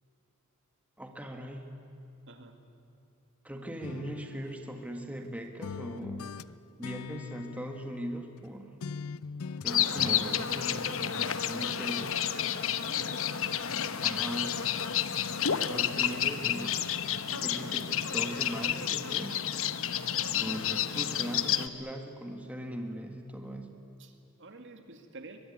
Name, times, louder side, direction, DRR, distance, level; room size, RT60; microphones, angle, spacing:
voice 1, 1.0-1.6 3.4-6.3 6.8-8.8 9.6-12.2 14.0-14.6 15.5-16.8 17.4-19.5 20.3-23.7, right 1 dB, 5° right, 3 dB, 1.7 m, -40 dB
voice 2, 2.3-2.6 12.8-13.4 16.7-16.9 17.3-17.8 24.0-25.4, right 2 dB, 60° right, 6 dB, 2.1 m, -49 dB
sound 1, 3.8-5.3 5.6-8.5 8.8-10.2, left 5 dB, 85° left, 0.5 m, -42 dB
sound 2, 9.7-21.7, left 9 dB, 65° left, 0.9 m, -30 dB
23.0 x 22.0 x 9.6 m, 2.7 s
head